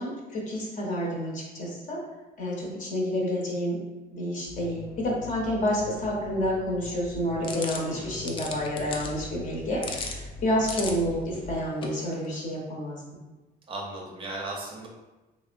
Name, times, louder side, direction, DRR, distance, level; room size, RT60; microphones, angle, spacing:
voice 1, 0.0-2.0 2.4-3.8 4.1-13.0, equal, 50° left, -3 dB, 0.8 m, -29 dB
sound 1, 4.5-11.6, left 2 dB, 75° left, 1.0 m, -43 dB
sound 2, 7.4-12.6, left 3 dB, 30° left, 0.3 m, -39 dB
voice 2, 7.8-8.2 13.7-14.9, right 2 dB, 30° right, -2 dB, 0.5 m, -37 dB
2.8 x 2.0 x 2.5 m, 1.1 s
cardioid pair, 110°, 17 cm